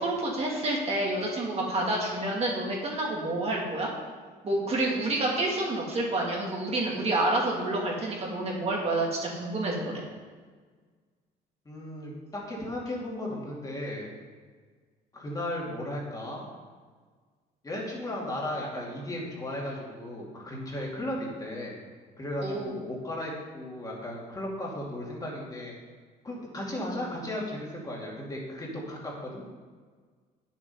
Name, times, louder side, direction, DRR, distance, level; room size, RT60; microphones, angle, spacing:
voice 1, 0.0-3.9 4.4-9.9 22.4-22.8, right 2 dB, 35° right, -3 dB, 2.4 m, -28 dB
voice 2, 11.6-14.2 15.1-16.5 17.6-21.8 22.2-25.7 26.2-29.5, left 1 dB, 20° left, -4 dB, 2.7 m, -35 dB
8.9 x 7.4 x 5.5 m, 1.5 s
cardioid pair, 110°, 17 cm